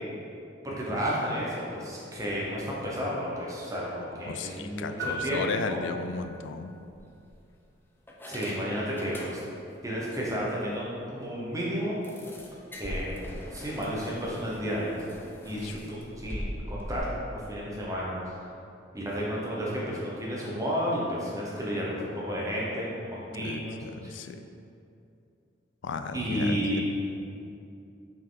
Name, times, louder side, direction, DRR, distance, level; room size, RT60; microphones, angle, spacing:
voice 1, 0.6-5.8 8.3-9.4 9.8-12.0 12.8-13.2 13.5-15.0 15.4-18.3 18.9-24.1 26.1-26.8, equal, 15° right, -5 dB, 1.0 m, -32 dB
voice 2, 4.2-6.7 15.6-15.8 23.4-24.4 25.8-26.8, left 4 dB, 75° left, 8 dB, 0.4 m, -35 dB
sound 1, 5.0-6.5, equal, 60° right, 1.2 m, -37 dB
sound 2, 6.0-6.2 6.9-7.6 8.1-9.7 10.0-10.2 10.6-10.7 11.0-11.1 12.0-17.0, equal, 10° left, 0.5 m, -41 dB
5.8 x 4.7 x 3.9 m, 2.6 s
head